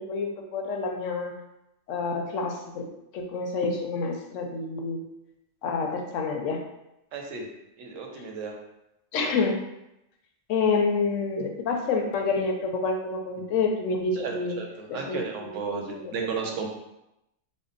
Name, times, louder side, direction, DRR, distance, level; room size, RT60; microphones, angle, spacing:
voice 1, 0.0-1.3 1.9-2.9 3.1-5.0 5.6-6.6 9.1-9.6 10.5-14.6 14.9-16.5, left 4 dB, 80° left, 3 dB, 0.9 m, -28 dB
voice 2, 7.1-7.5 7.8-8.5 14.2-14.7 14.9-16.7, right 5 dB, 90° right, 1 dB, 1.0 m, -33 dB
3.6 x 2.1 x 3.8 m, 0.88 s
omnidirectional pair, 1.3 m